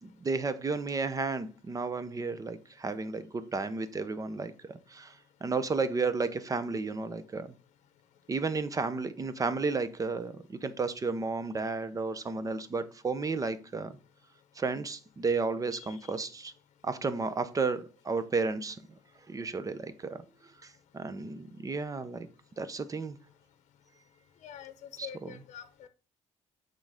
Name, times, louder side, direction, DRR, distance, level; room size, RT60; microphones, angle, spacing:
voice 1, 0.0-4.5 4.9-5.1 5.4-7.5 8.3-13.9 14.6-16.5 16.8-18.8 19.3-20.2 20.6-22.3 22.6-23.2 25.0-25.4, right 4 dB, 25° right, 0.7 m, -32 dB
voice 2, 15.7-16.1 24.4-25.9, left 9 dB, 65° left, 0.8 m, -46 dB
8.8 x 3.8 x 3.6 m
cardioid pair, 110°, 13 cm